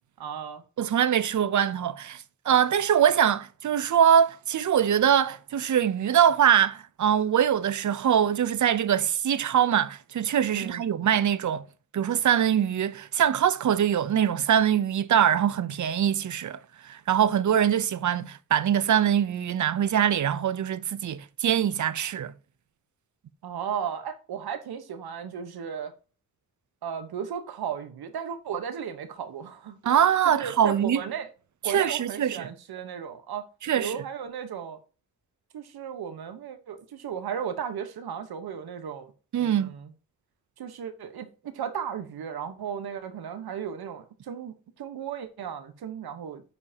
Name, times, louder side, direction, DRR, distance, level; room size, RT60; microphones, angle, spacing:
voice 1, 0.2-0.6 10.5-10.8 23.4-25.9 26.8-31.3 31.6-33.5 33.8-34.8 35.5-39.1 39.4-39.9 40.6-46.4, right 8 dB, 85° right, 1.1 m, -35 dB
voice 2, 0.8-11.6 11.9-22.3 29.8-31.0 31.7-32.5 33.6-34.0 39.3-39.7, right 9 dB, 50° right, 0.6 m, -23 dB
9.5 x 5.4 x 2.8 m
wide cardioid pair, 145°, 37 cm